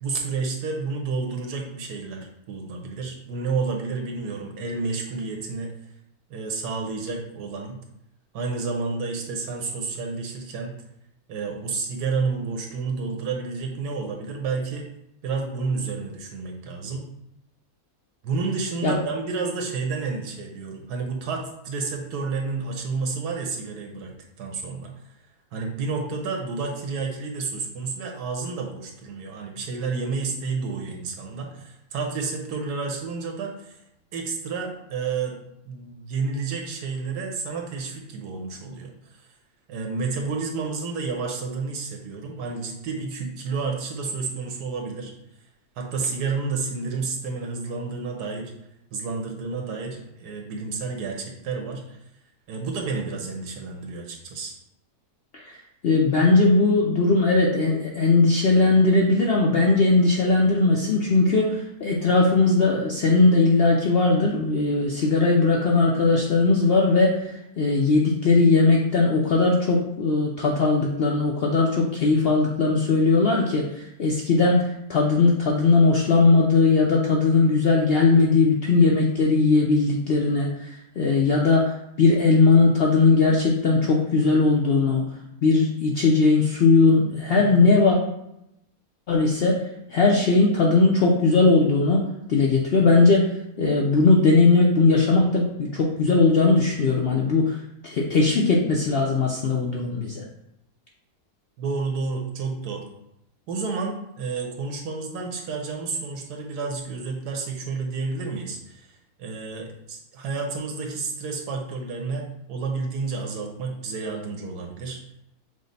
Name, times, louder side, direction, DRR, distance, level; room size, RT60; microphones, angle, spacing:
voice 1, 0.0-5.7 6.3-7.8 8.3-10.7 11.3-14.8 15.2-17.0 18.2-24.1 24.4-24.9 25.5-33.8 34.1-35.4 35.6-38.9 39.7-45.1 45.8-48.5 48.9-52.0 52.5-54.5 101.6-102.9 103.5-108.9 109.2-115.0, right 4 dB, 85° right, 2 dB, 1.4 m, -30 dB
voice 2, 55.8-67.2 67.6-73.6 74.0-74.6 74.9-80.5 81.0-81.7 82.0-85.0 85.4-88.0 89.1-89.6 89.9-93.3 93.6-97.5 97.8-100.2, left 3 dB, 65° left, -2 dB, 0.6 m, -19 dB
6.3 x 2.1 x 4.0 m, 0.82 s
omnidirectional pair, 1.7 m